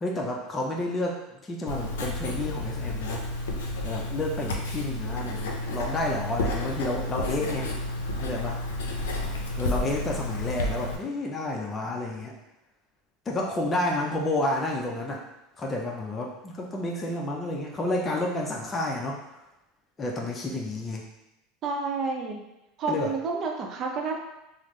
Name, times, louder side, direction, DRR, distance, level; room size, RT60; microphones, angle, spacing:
voice 1, 0.0-3.2 3.8-7.7 8.2-8.6 9.6-12.3 13.3-15.2 15.6-19.3 20.0-21.0 22.9-23.1, left 2 dB, 25° left, -1 dB, 0.5 m, -30 dB
Writing, 1.7-11.0, left 1 dB, 85° left, 0.5 m, -31 dB
voice 2, 21.6-22.4 22.8-24.2, right 4 dB, 45° right, 2 dB, 0.6 m, -30 dB
3.4 x 2.0 x 3.1 m, 0.91 s
hypercardioid pair, 100°, 0 cm